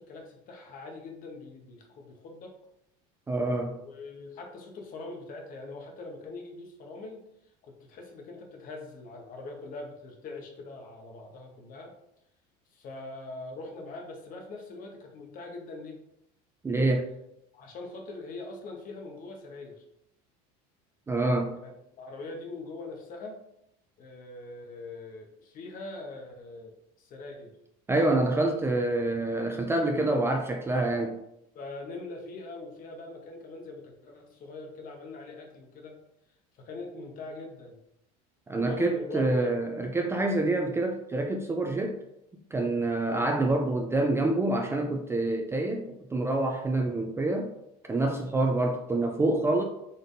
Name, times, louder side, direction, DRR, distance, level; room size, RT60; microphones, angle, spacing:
voice 1, 0.0-2.5 3.8-7.2 7.6-11.9 12.7-16.0 17.5-19.8 21.6-23.4 24.0-27.6 29.9-30.1 30.7-31.0 31.5-35.9 36.5-37.8 38.5-39.6 43.1-43.2 48.4-48.6, left 3 dB, 50° left, 3 dB, 0.9 m, -42 dB
voice 2, 3.3-3.8 16.6-17.1 21.1-21.6 27.9-31.2 38.5-42.0 42.5-47.5 47.9-49.6, right 2 dB, 15° right, 2 dB, 0.4 m, -27 dB
4.1 x 3.4 x 2.6 m, 0.81 s
supercardioid pair, 110°, 19 cm